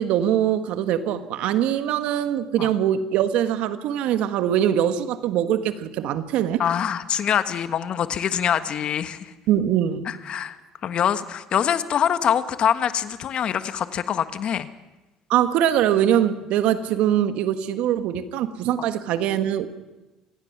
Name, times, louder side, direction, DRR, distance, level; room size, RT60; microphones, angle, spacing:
voice 1, 0.0-6.6 9.5-10.1 15.3-19.7, right 10 dB, 70° right, 9 dB, 1.5 m, -22 dB
voice 2, 6.6-9.3 10.1-10.6 10.8-14.7, left 9 dB, 50° left, 10 dB, 1.4 m, -24 dB
25.5 x 17.5 x 6.0 m, 1.1 s
hypercardioid pair, 75°, 2 cm